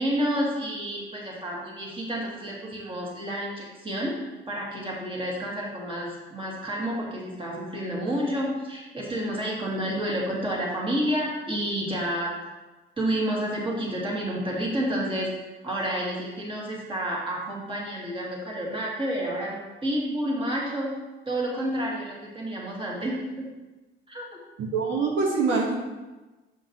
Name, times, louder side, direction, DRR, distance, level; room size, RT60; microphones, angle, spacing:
voice 1, 0.0-4.1 4.5-12.3 13.0-15.3 15.6-21.0 21.3-23.5 24.1-24.4, right 1 dB, 25° right, -4 dB, 1.8 m, -30 dB
voice 2, 24.6-25.7, right 4 dB, 75° right, -2 dB, 1.0 m, -24 dB
6.5 x 5.4 x 2.8 m, 1.2 s
cardioid pair, 90°, 20 cm